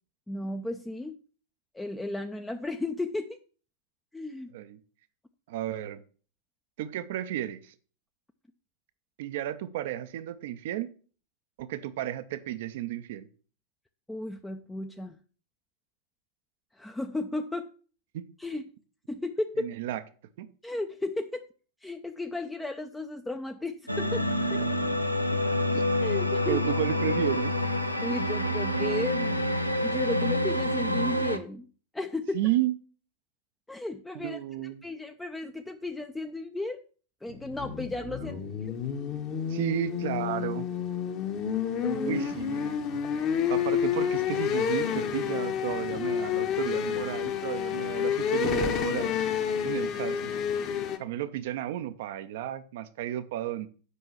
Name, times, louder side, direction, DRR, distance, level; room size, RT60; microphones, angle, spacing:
voice 1, 0.3-1.2 1.7-3.4 4.1-4.5 14.1-15.2 16.7-17.7 18.4-18.6 19.1-19.8 20.6-21.4 21.8-24.6 26.0-26.6 28.0-29.5 29.8-31.7 31.9-32.4 33.7-36.8 37.2-38.4 38.6-38.7 41.8-42.2 42.7-42.8, left 2 dB, 5° left, 5 dB, 0.6 m, -34 dB
voice 2, 5.5-6.0 6.8-7.7 9.2-10.9 11.6-13.3 18.1-18.3 19.6-20.0 20.4-20.5 24.6-24.7 25.7-25.8 26.5-27.5 32.3-32.7 34.1-34.8 39.5-40.7 42.0-43.0 43.5-49.1 49.6-50.3 51.0-53.7, right 12 dB, 55° right, 12 dB, 0.6 m, -32 dB
sound 1, 23.9-31.4, left 1 dB, 90° left, 0.8 m, -27 dB
sound 2, 37.3-51.0, left 8 dB, 35° left, 1.2 m, -29 dB
8.3 x 5.5 x 7.1 m, 0.40 s
figure-of-eight pair, 90°, 0 cm